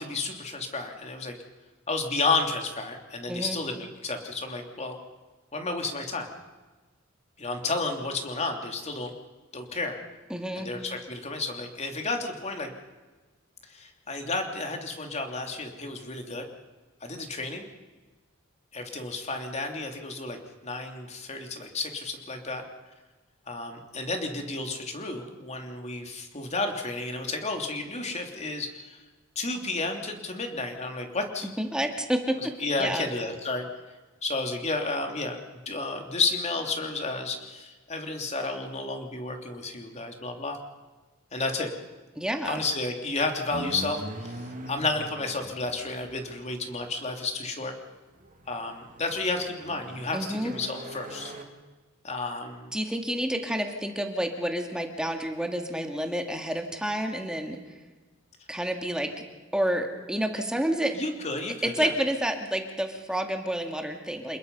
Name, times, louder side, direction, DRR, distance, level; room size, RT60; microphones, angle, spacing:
voice 1, 0.0-1.4 1.9-5.0 5.5-6.3 7.4-9.1 9.5-10.0 10.6-12.7 13.7-16.5 17.0-17.6 18.7-22.6 23.5-29.0 29.3-31.5 32.4-33.7 34.2-40.6 41.3-41.7 42.4-47.7 48.5-51.3 52.0-52.7 60.9-61.9, left 3 dB, 35° left, 4 dB, 3.1 m, -32 dB
voice 2, 3.3-3.6 10.3-10.7 31.4-32.5 32.8-33.1 42.2-42.6 50.1-50.5 52.7-57.6 58.5-59.1 59.5-61.0 61.6-64.4, equal, 5° right, 3 dB, 2.3 m, -29 dB
sound 1, 43.5-47.0 48.1-51.4, right 1 dB, 40° right, 2.9 m, -42 dB
28.5 x 21.0 x 5.5 m, 1.3 s
head